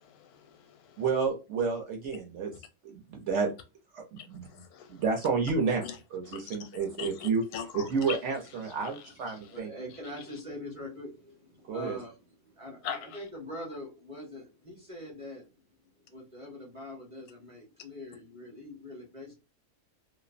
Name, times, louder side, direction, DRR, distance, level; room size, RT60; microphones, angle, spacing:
voice 1, 0.2-0.6 0.9-1.0 4.2-4.3 4.5-4.9 5.8-5.9 6.3-8.2 9.0-9.3 12.8-13.0, left 8 dB, 85° left, 1.1 m, -41 dB
voice 2, 1.0-2.5 2.8-3.5 3.9-4.5 4.9-5.8 6.1-7.4 7.7-9.7 11.7-12.0, right 5 dB, 65° right, 0.8 m, -30 dB
voice 3, 9.0-15.5 16.1-19.3, left 1 dB, 30° right, 0.7 m, -43 dB
2.5 x 2.0 x 2.4 m
omnidirectional pair, 1.6 m